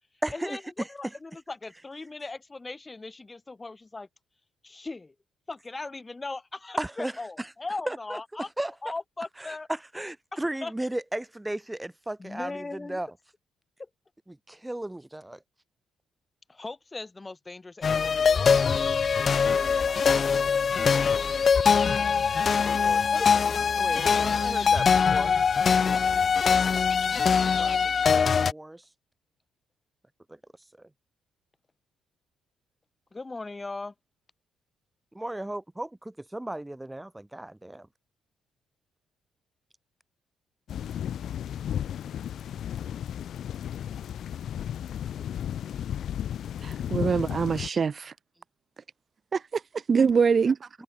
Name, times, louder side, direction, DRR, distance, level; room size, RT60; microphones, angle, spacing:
voice 1, 0.2-0.9 6.8-7.1 7.4-7.5 7.9-8.2 8.6-8.7 9.4-13.1 14.3-15.4 20.8-21.0 23.8-25.3 27.5-28.8 30.3-30.4 30.8-30.9 35.1-37.9, right 1 dB, 10° right, 5.8 m, -35 dB
voice 2, 0.9-4.1 4.6-5.1 5.5-8.5 8.8-9.7 10.6-10.7 12.2-13.0 16.5-18.9 19.8-20.5 22.8-23.6 33.1-33.9, left 3 dB, 20° left, 4.3 m, -39 dB
sound 1, 17.8-28.5, left 6 dB, 45° left, 1.1 m, -23 dB
sound 2, 40.7-47.7, left 10 dB, 65° left, 1.9 m, -34 dB
voice 3, 46.6-48.1 49.3-49.6 49.9-50.7, right 5 dB, 40° right, 0.7 m, -24 dB
cardioid pair, 90°, 0 cm